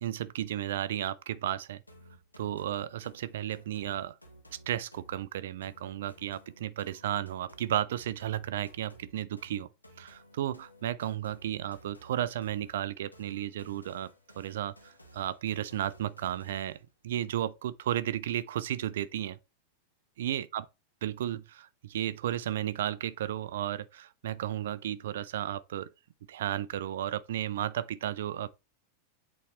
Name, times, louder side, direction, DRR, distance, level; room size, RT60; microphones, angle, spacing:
voice 1, 0.0-1.8 2.4-4.1 4.5-9.7 10.0-14.1 14.4-16.8 17.0-19.4 20.2-20.7 21.0-25.9 26.3-28.5, right 11 dB, 60° right, 0.5 m, -33 dB
sound 1, 1.9-16.9, right 1 dB, 85° left, 1.1 m, -56 dB
8.3 x 3.9 x 3.2 m
figure-of-eight pair, 90°, 0 cm